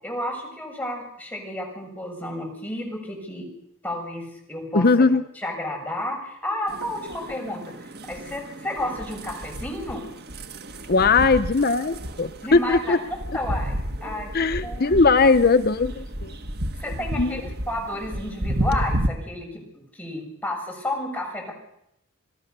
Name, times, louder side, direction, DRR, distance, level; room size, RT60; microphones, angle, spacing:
voice 1, 0.0-3.5 3.8-4.9 5.3-10.1 12.4-12.9 13.3-14.3 14.6-15.0 16.8-19.6 19.9-21.5, left 1 dB, 10° left, 1 dB, 6.7 m, -31 dB
voice 2, 4.7-5.2 10.9-13.0 14.3-16.3 17.2-17.4, left 4 dB, 45° left, 11 dB, 0.8 m, -19 dB
sound 1, 6.7-19.1, right 1 dB, 50° right, 1.5 m, -32 dB
27.0 x 18.5 x 6.8 m, 0.80 s
head